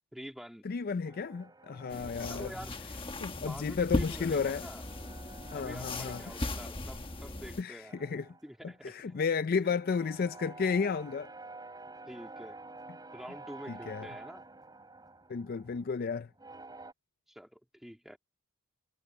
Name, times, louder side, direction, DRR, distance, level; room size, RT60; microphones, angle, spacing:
voice 1, 0.1-0.7 1.9-2.7 3.4-4.8 5.5-7.9 8.4-9.2 9.6-9.8 12.1-12.6 13.1-14.4 17.3-18.2, equal, ahead, 1.9 m, -47 dB
voice 2, 0.6-2.5 3.2-4.7 5.5-6.3 7.6-8.3 8.6-11.3 13.7-14.1 15.3-16.3, left 5 dB, 45° left, 0.4 m, -33 dB
sound 1, 1.1-3.6 3.9-7.5 7.8-16.9, right 3 dB, 20° right, 6.1 m, -51 dB
sound 2, 1.9-7.6, left 2 dB, 25° left, 1.3 m, -37 dB
head